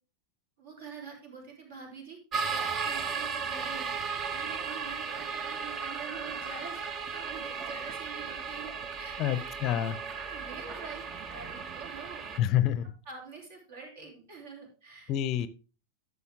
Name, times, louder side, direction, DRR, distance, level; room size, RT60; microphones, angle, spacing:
voice 1, 0.6-2.2 2.6-3.9 4.3-6.8 7.1-9.4 9.7-9.9 10.2-12.5 13.0-15.1, right 5 dB, 60° right, 1 dB, 3.4 m, -46 dB
sound 1, 2.3-12.4, right 5 dB, 30° right, 0.9 m, -35 dB
voice 2, 9.2-10.0 10.3-10.4 12.4-12.9 15.1-15.5, left 11 dB, 40° left, 15 dB, 0.6 m, -28 dB
11.5 x 6.9 x 3.6 m, 0.35 s
figure-of-eight pair, 90°, 0 cm